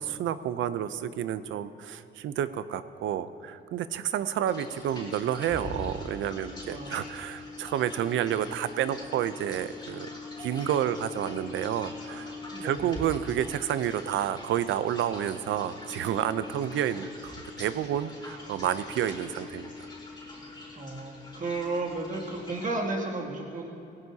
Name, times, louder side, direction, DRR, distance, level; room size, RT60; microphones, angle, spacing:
voice 1, 0.0-10.1 10.4-12.3 12.6-19.7, right 10 dB, 75° right, 13 dB, 0.6 m, -30 dB
sound 1, 4.5-22.7, left 3 dB, 20° left, 4.0 m, -42 dB
voice 2, 6.6-7.0 12.5-12.9 20.7-23.7, right 2 dB, 40° right, -2 dB, 2.6 m, -33 dB
18.5 x 17.5 x 2.8 m, 2.9 s
cardioid pair, 90°, 20 cm